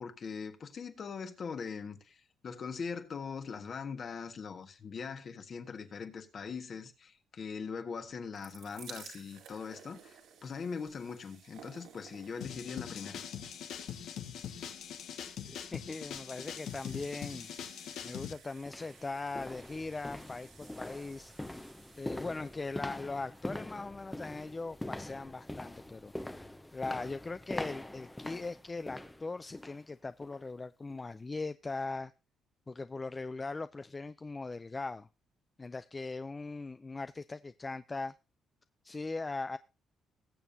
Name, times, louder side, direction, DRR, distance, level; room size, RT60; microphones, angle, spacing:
voice 1, 0.0-13.2, left 5 dB, 50° left, 1.6 m, -41 dB
sound 1, 8.1-25.1 25.9-26.0 26.2-26.3, right 7 dB, 85° right, 3.0 m, -57 dB
sound 2, 12.4-18.3, left 9 dB, 80° left, 1.1 m, -42 dB
voice 2, 15.4-17.5 18.0-21.7 22.0-26.1 26.7-32.1 32.7-35.1 35.6-38.1 38.8-39.6, left 3 dB, 25° left, 0.4 m, -40 dB
sound 3, 17.9-18.0 18.6-29.8 30.2-30.5 30.9-31.0, left 1 dB, 10° left, 0.8 m, -43 dB
19.5 x 7.1 x 2.7 m
cardioid pair, 90°, 0 cm